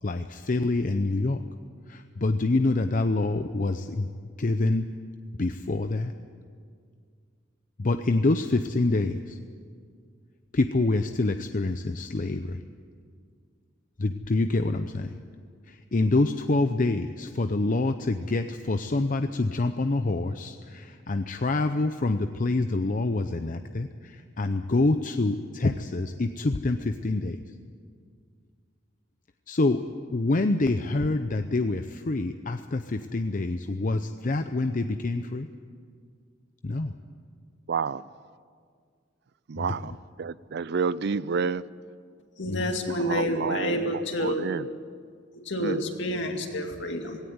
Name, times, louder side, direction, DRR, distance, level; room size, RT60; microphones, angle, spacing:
voice 1, 0.0-1.4 1.9-4.1 4.4-4.9 5.4-6.1 7.8-9.4 10.5-12.6 14.0-15.2 15.6-27.5 29.5-29.8 30.1-35.5 36.6-36.9 39.6-39.9 42.5-42.7, left 2 dB, 45° left, 0.6 m, -26 dB
voice 2, 37.7-38.1 39.5-41.6 43.0-44.7 45.6-45.8, right 5 dB, 60° right, 0.4 m, -30 dB
voice 3, 42.4-44.5 45.5-47.2, left 1 dB, 65° left, 2.4 m, -29 dB
17.5 x 17.5 x 9.6 m
head